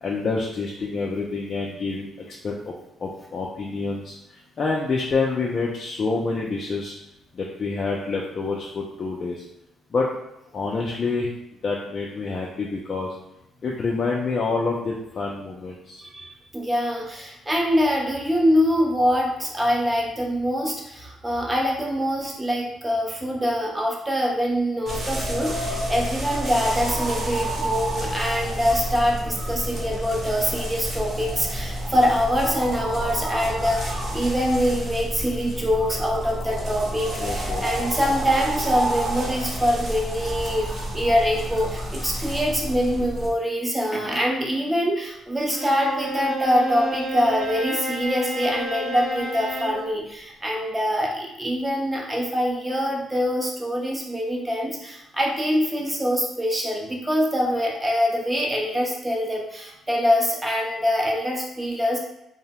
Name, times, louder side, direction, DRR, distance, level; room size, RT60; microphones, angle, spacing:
voice 1, 0.0-2.7 3.0-4.1 4.6-6.9 7.3-9.4 9.9-10.1 10.5-11.3 11.6-13.1 13.6-16.0 37.2-37.7, left 4 dB, 45° left, -3 dB, 0.4 m, -27 dB
voice 2, 16.0-62.0, equal, 15° right, -1 dB, 0.6 m, -24 dB
sound 1, 24.9-43.3, right 1 dB, 40° right, 0.9 m, -29 dB
Bowed string instrument, 45.5-49.8, right 1 dB, 85° right, 0.8 m, -30 dB
2.7 x 2.0 x 2.9 m, 0.85 s
cardioid pair, 90°, 0 cm